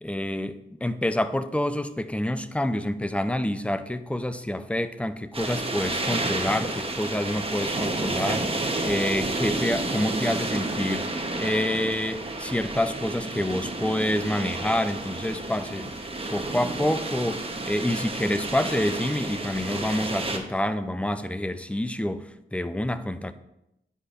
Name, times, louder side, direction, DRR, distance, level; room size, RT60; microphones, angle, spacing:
voice 1, 0.0-15.9 16.3-23.3, left 1 dB, 5° left, 11 dB, 0.5 m, -28 dB
sound 1, 5.3-20.4, right 2 dB, 30° right, 1.0 m, -30 dB
9.8 x 4.8 x 2.5 m, 0.85 s
cardioid pair, 45°, 20 cm